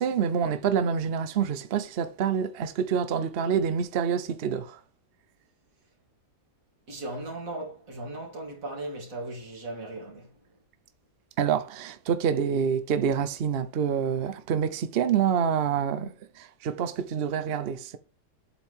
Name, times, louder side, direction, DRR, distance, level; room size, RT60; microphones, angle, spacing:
voice 1, 0.0-4.8 11.4-16.1 16.4-18.0, right 7 dB, 70° right, 0.5 m, -27 dB
voice 2, 6.9-10.3, right 2 dB, 50° right, 2.6 m, -37 dB
8.2 x 4.5 x 3.6 m
omnidirectional pair, 1.9 m